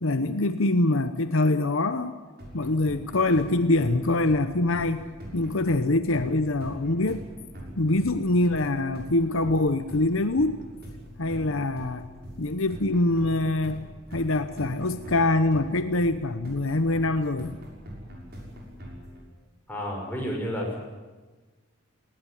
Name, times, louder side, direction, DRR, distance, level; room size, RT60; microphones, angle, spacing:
voice 1, 0.0-2.1 2.5-5.1 5.3-7.2 7.8-10.5 11.2-12.1 12.4-13.8 14.1-17.6, left 2 dB, 65° left, 10 dB, 1.0 m, -24 dB
sound 1, 2.4-19.2, equal, 50° right, 6.5 m, -43 dB
voice 2, 19.7-20.8, equal, 10° left, -1 dB, 5.8 m, -31 dB
19.5 x 18.5 x 10.0 m, 1.3 s
head